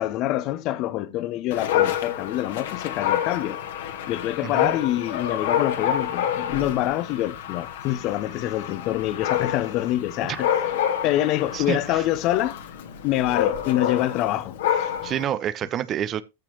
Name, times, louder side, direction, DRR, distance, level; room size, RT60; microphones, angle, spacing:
voice 1, 0.0-3.6 4.1-10.6 11.0-12.6 13.0-14.9, left 14 dB, 40° left, 0.9 m, -26 dB
Dog, 1.5-15.3, left 9 dB, 55° left, 1.7 m, -28 dB
voice 2, 4.4-4.7 10.3-10.4 11.5-12.0 15.0-16.2, right 10 dB, 30° right, 0.7 m, -28 dB
14.5 x 5.9 x 3.0 m
figure-of-eight pair, 90°, 0 cm